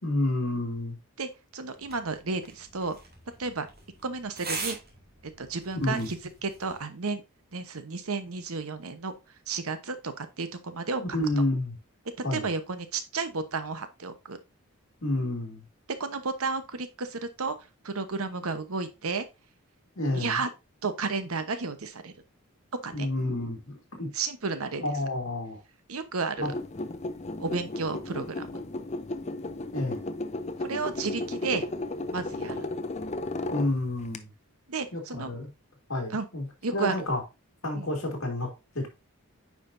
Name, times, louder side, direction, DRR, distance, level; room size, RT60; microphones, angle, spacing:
voice 1, 0.0-1.0 5.8-6.1 11.0-11.8 12.2-12.5 15.0-15.6 20.0-20.4 22.9-24.1 24.8-25.6 26.4-26.5 29.7-30.0 33.5-34.3 34.9-35.5 35.9-36.5 36.7-37.2 37.6-38.5 38.7-38.9, left 1 dB, 60° left, 2.4 m, -29 dB
voice 2, 1.2-3.0 3.4-3.7 4.0-4.8 5.4-7.2 7.5-9.1 9.5-11.0 12.3-14.4 16.0-17.5 17.8-19.3 20.1-20.5 20.8-22.1 22.8-23.1 24.1-24.8 25.9-26.5 27.4-28.5 30.6-31.7 32.1-32.7 34.7-35.3 36.1-36.2 36.6-37.0 37.7-37.9, right 4 dB, 75° right, 1.0 m, -32 dB
sound 1, 1.8-6.8, right 4 dB, 45° right, 1.9 m, -42 dB
sound 2, 26.4-34.2, left 2 dB, 30° left, 0.5 m, -34 dB
9.1 x 5.1 x 2.6 m
head